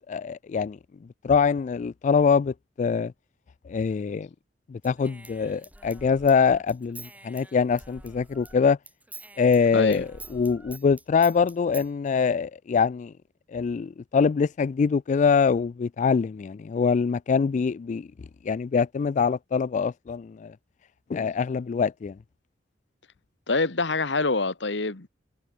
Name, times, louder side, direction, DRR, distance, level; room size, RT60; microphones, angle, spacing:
voice 1, 0.1-0.8 1.2-3.1 3.7-4.3 4.7-8.8 9.4-13.1 13.5-20.6 21.1-22.2, left 5 dB, 40° left, 0.3 m, -24 dB
Human voice / Scissors, 4.8-8.6 8.9-11.9, right 2 dB, 10° right, 7.0 m, -46 dB
voice 2, 9.7-10.0 23.5-25.1, left 3 dB, 70° left, 1.6 m, -25 dB
head